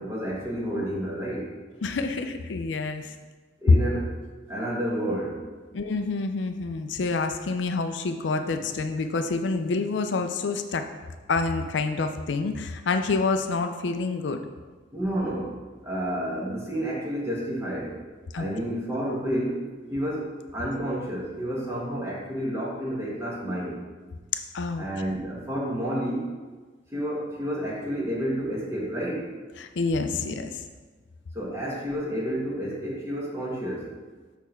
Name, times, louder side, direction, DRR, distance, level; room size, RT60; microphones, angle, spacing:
voice 1, 0.0-1.5 3.6-4.1 4.5-5.4 14.9-18.0 18.4-23.8 24.8-26.3 26.9-29.4 31.3-33.9, right 1 dB, 15° right, -4 dB, 1.3 m, -30 dB
voice 2, 1.8-3.1 3.7-3.8 5.7-10.9 11.3-14.4 18.3-18.4 24.5-24.9 29.6-30.6, left 3 dB, 80° left, 7 dB, 0.5 m, -27 dB
6.5 x 3.4 x 5.7 m, 1.3 s
head